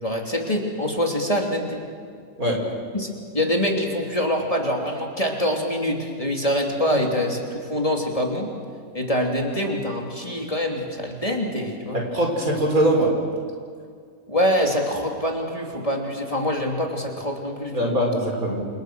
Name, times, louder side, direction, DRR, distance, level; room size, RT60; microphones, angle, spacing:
voice 1, 0.0-1.9 2.9-8.5 8.9-12.1 14.3-17.9, equal, 25° left, 1 dB, 3.1 m, -25 dB
voice 2, 11.9-13.1 17.7-18.6, right 1 dB, 75° right, 1 dB, 5.5 m, -21 dB
29.5 x 27.5 x 6.3 m, 2.1 s
omnidirectional pair, 1.5 m